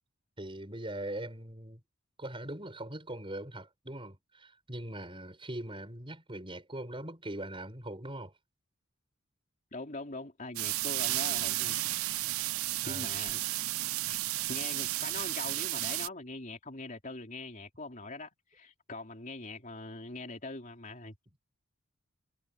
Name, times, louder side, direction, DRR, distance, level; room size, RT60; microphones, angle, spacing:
voice 1, 0.4-1.8 2.2-8.3 12.8-13.1, right 1 dB, 25° right, 6.1 m, -41 dB
voice 2, 9.7-12.2 12.9-13.4 14.1-14.2 14.5-21.2, left 2 dB, 35° left, 3.7 m, -43 dB
sound 1, 10.6-16.1, right 17 dB, 80° right, 0.4 m, -33 dB
head